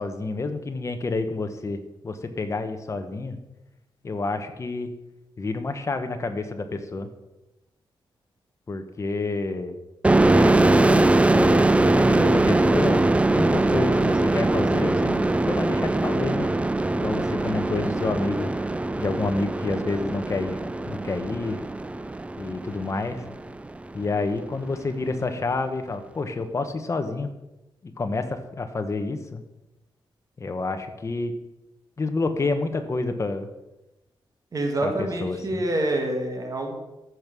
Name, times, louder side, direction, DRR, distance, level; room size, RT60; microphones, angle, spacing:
voice 1, 0.0-3.4 4.0-4.9 5.4-7.1 8.7-9.8 10.3-16.5 16.9-18.5 19.0-20.6 20.9-21.6 22.4-23.2 23.9-27.3 27.8-29.4 30.4-31.3 32.0-33.5 34.8-35.6, left 3 dB, 35° left, 7 dB, 1.1 m, -29 dB
sound 1, 10.0-23.5, right 2 dB, 15° right, 0.4 m, -22 dB
voice 2, 34.5-36.8, right 1 dB, 40° right, 2 dB, 1.8 m, -27 dB
14.0 x 5.4 x 6.3 m, 0.98 s
wide cardioid pair, 135°, 9 cm